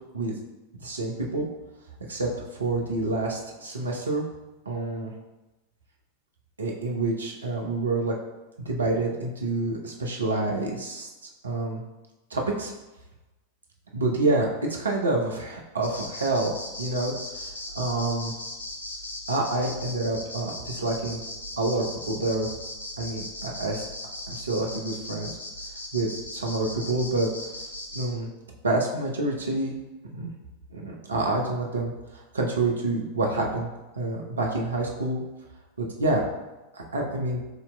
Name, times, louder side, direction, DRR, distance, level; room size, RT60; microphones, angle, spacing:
voice 1, 0.8-1.5 2.1-4.3 4.7-5.1 6.6-8.2 8.6-11.1 11.4-11.8 12.3-12.7 13.9-16.5 16.8-17.1 17.7-18.3 19.3-21.2 21.6-22.5 23.0-23.8 24.3-25.3 25.9-27.3 27.9-28.3 28.6-29.8 30.1-30.3 30.7-33.7 33.9-35.2 35.8-36.2 36.7-37.4, right 2 dB, 75° right, 0 dB, 0.7 m, -27 dB
sound 1, 15.8-28.1, left 1 dB, 75° left, 0.6 m, -38 dB
7.7 x 2.9 x 2.2 m, 1.1 s
figure-of-eight pair, 90°, 0 cm